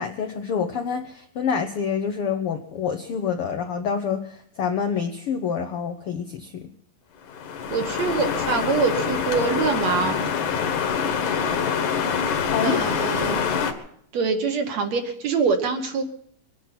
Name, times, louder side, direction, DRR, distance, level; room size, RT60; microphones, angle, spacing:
voice 1, 0.0-6.7 12.5-12.8, left 6 dB, 90° left, 6 dB, 1.2 m, -27 dB
sound 1, 7.3-13.7, left 6 dB, 65° left, 2.8 m, -25 dB
voice 2, 7.7-10.2 12.6-13.4 14.1-16.0, right 5 dB, 60° right, 6 dB, 2.2 m, -24 dB
23.5 x 9.8 x 6.0 m, 0.67 s
omnidirectional pair, 3.9 m